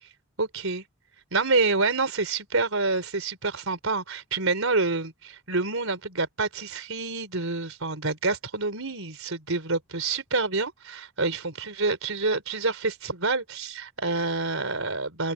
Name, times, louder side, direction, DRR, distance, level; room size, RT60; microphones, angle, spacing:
voice 1, 0.4-0.8 1.3-15.3, right 3 dB, 70° right, 5.0 m, -27 dB
open air
head